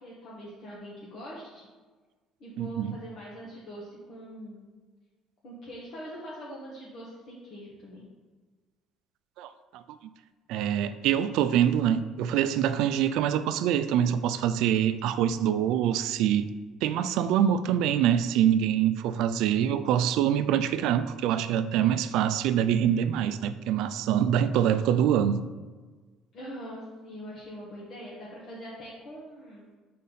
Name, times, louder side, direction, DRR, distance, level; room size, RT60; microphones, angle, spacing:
voice 1, 0.0-1.6 2.4-4.7 5.4-8.1 26.3-29.7, equal, 60° left, 1.2 m, -43 dB
voice 2, 2.6-3.0 9.4-9.8 10.5-16.5 16.8-25.4, right 10 dB, 75° right, 0.3 m, -25 dB
4.2 x 4.0 x 5.5 m
cardioid pair, 115°, 0 cm